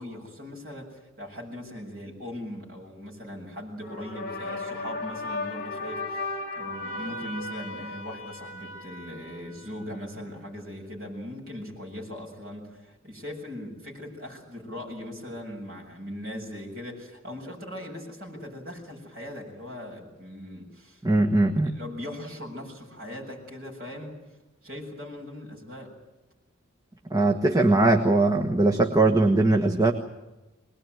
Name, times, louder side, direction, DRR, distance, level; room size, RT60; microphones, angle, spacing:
voice 1, 0.0-21.0 21.3-24.1 24.6-25.9, left 1 dB, 45° right, -2 dB, 7.3 m, -40 dB
Trumpet Musical Orgasm, 3.8-10.2, left 2 dB, 45° left, 3.8 m, -36 dB
voice 2, 21.0-21.7 27.1-29.9, right 2 dB, 20° right, 2 dB, 1.4 m, -20 dB
23.0 x 20.0 x 9.2 m, 1.0 s
head